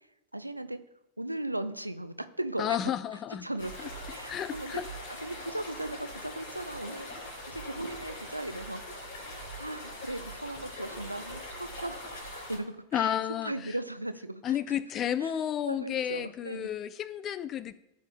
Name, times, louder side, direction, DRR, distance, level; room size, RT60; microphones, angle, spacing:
voice 1, 0.3-0.8 1.2-2.9 3.4-4.8 5.2-7.1 7.5-9.0 9.6-14.8 15.2-15.3 15.7-16.7, right 1 dB, 85° right, 0.5 m, -37 dB
voice 2, 2.6-3.5 4.3-4.9 12.9-13.5 14.4-17.7, left 10 dB, 30° left, 0.4 m, -31 dB
sound 1, 3.6-12.6, left 1 dB, 55° left, 3.4 m, -42 dB
15.0 x 7.2 x 2.2 m
figure-of-eight pair, 90°, 0 cm